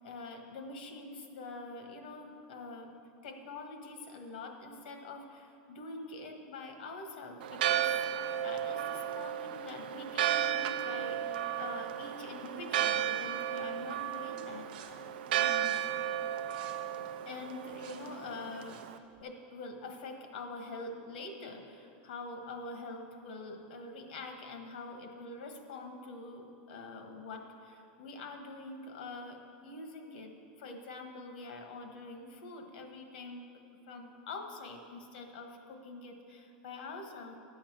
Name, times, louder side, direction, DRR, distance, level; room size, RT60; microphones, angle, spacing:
voice 1, 0.0-2.9 3.2-14.7 15.0-15.1 15.3-15.8 17.2-18.9 19.2-30.3 30.6-33.5 33.9-37.4, left 3 dB, 70° left, 4 dB, 1.4 m, -45 dB
Church bell, 7.4-19.0, right 11 dB, 80° right, 0.5 m, -34 dB
sound 1, 14.4-19.2, right 7 dB, 60° right, 1.1 m, -55 dB
10.5 x 7.3 x 6.0 m, 2.7 s
supercardioid pair, 180°, 5 cm